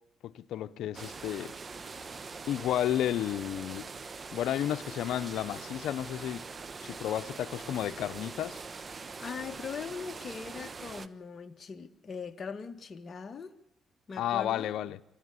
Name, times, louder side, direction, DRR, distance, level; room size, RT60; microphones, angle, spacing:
voice 1, 0.2-1.5 2.5-3.9 4.3-6.4 6.8-8.6 14.2-15.0, left 11 dB, 80° left, 0.8 m, -32 dB
sound 1, 0.9-11.1, right 4 dB, 35° right, 1.0 m, -43 dB
voice 2, 9.2-13.5 14.1-14.8, left 5 dB, 40° left, 1.8 m, -40 dB
27.0 x 13.5 x 9.7 m
cardioid pair, 90°, 0 cm